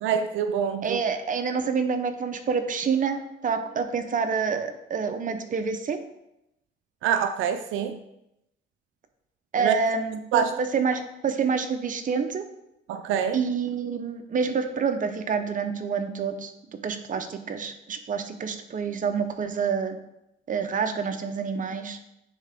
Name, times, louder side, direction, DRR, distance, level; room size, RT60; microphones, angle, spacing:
voice 1, 0.0-1.0 7.0-8.0 9.6-9.8 10.3-10.6 12.9-13.4, right 8 dB, 85° right, 9 dB, 0.4 m, -25 dB
voice 2, 0.8-6.0 9.5-10.4 10.7-12.4 13.3-16.5 16.8-20.0 20.5-22.0, right 5 dB, 40° right, 7 dB, 0.8 m, -27 dB
9.6 x 3.7 x 3.5 m, 0.86 s
cardioid pair, 90°, 20 cm